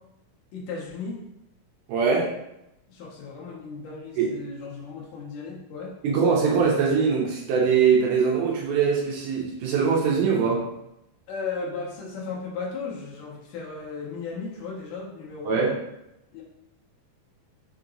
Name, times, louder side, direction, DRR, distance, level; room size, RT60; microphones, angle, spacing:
voice 1, 0.5-1.2 2.9-5.9 11.3-15.7 16.3-16.4, left 4 dB, 80° left, -3 dB, 2.3 m, -35 dB
voice 2, 1.9-2.3 4.2-4.3 6.0-10.6 15.4-15.7, right 6 dB, 75° right, -3 dB, 2.0 m, -22 dB
5.7 x 2.9 x 2.5 m, 0.86 s
omnidirectional pair, 4.0 m